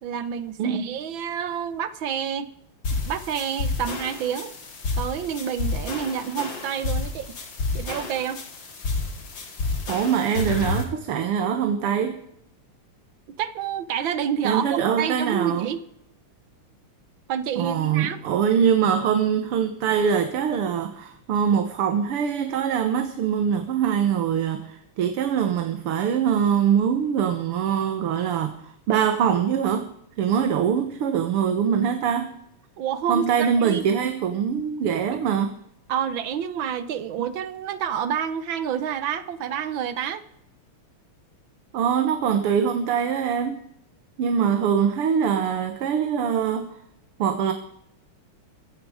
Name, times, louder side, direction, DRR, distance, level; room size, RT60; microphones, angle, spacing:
voice 1, 0.0-2.5 3.0-4.5 5.0-7.4 7.7-8.4 13.4-15.8 17.3-18.2 32.8-34.1 35.9-40.2, right 8 dB, 65° right, 1.6 m, -28 dB
voice 2, 0.6-0.9 9.9-12.2 14.4-15.7 17.6-32.4 33.1-35.5 37.2-37.3 41.7-43.7 44.2-46.7 47.2-47.5, right 7 dB, 85° right, 2.1 m, -23 dB
sound 1, 2.8-10.8, left 3 dB, 55° left, 3.1 m, -30 dB
16.0 x 15.0 x 4.9 m
omnidirectional pair, 2.4 m